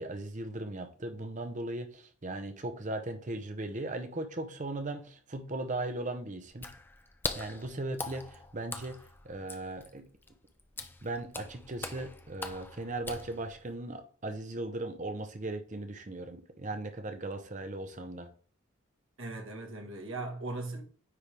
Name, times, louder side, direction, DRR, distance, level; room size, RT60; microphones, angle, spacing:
voice 1, 0.0-6.7 7.3-10.0 11.0-18.3, right 2 dB, 35° right, 0.8 m, -38 dB
Water / Splash splatter, 6.5-13.7, left 3 dB, 10° left, 0.4 m, -42 dB
voice 2, 19.2-20.8, right 2 dB, 60° right, 1.7 m, -38 dB
9.4 x 3.6 x 3.4 m
head